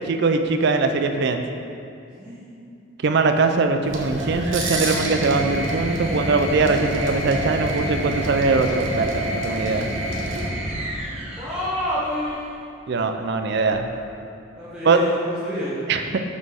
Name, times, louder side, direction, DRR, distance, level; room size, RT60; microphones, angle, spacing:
voice 1, 0.0-1.4 3.0-9.9 12.9-13.9 14.8-15.0 15.9-16.2, right 4 dB, 60° right, 7 dB, 0.4 m, -21 dB
sound 1, 3.8-10.5, right 1 dB, 75° right, 1.0 m, -30 dB
sound 2, 4.0-12.5 13.7-14.3, equal, 30° right, 0.8 m, -31 dB
voice 2, 11.4-12.4 14.6-15.7, equal, 5° right, -12 dB, 1.2 m, -28 dB
6.1 x 5.4 x 3.5 m, 2.5 s
head